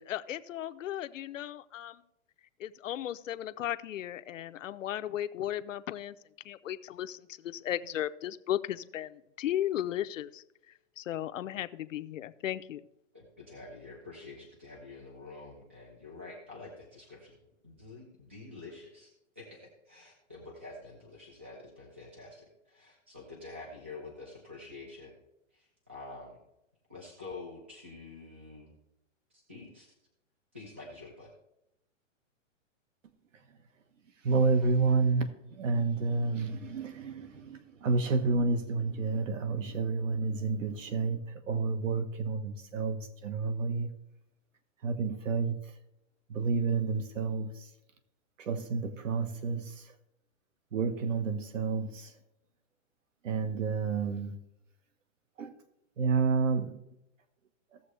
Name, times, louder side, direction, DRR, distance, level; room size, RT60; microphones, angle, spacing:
voice 1, 0.0-2.0 2.6-6.2 6.4-12.8, left 12 dB, 70° left, 0.7 m, -36 dB
voice 2, 13.1-17.4 17.6-25.1 25.5-26.4 26.9-28.7 29.3-29.9 30.5-31.3, left 3 dB, 10° right, 0.3 m, -47 dB
voice 3, 34.2-43.9 44.8-45.6 46.3-47.5 48.4-49.8 50.7-52.1 53.2-54.3 55.4-55.5 56.0-56.8, right 4 dB, 70° right, 1.5 m, -30 dB
16.5 x 7.0 x 3.3 m
hypercardioid pair, 170°, 39 cm